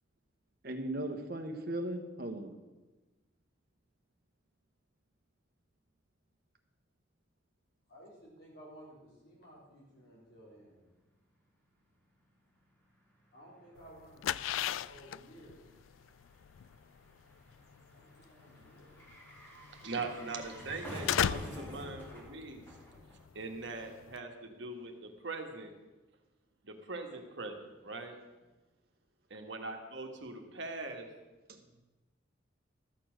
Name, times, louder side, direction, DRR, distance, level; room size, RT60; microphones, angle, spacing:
voice 1, 0.6-2.5 31.5-31.6, right 1 dB, 50° right, 6 dB, 1.2 m, -37 dB
voice 2, 7.9-10.8 13.3-15.6 17.9-19.0, right 1 dB, 55° left, -5 dB, 4.1 m, -55 dB
sound 1, 12.9-13.0 13.2-23.6 23.9-24.0, equal, 10° left, 1.8 m, -49 dB
sound 2, 13.8-24.2, left 10 dB, 80° left, 0.3 m, -38 dB
voice 3, 19.7-22.6 23.3-25.7 26.6-28.2 29.3-31.1, right 3 dB, 65° right, 4 dB, 1.5 m, -41 dB
13.0 x 7.0 x 6.3 m, 1.2 s
head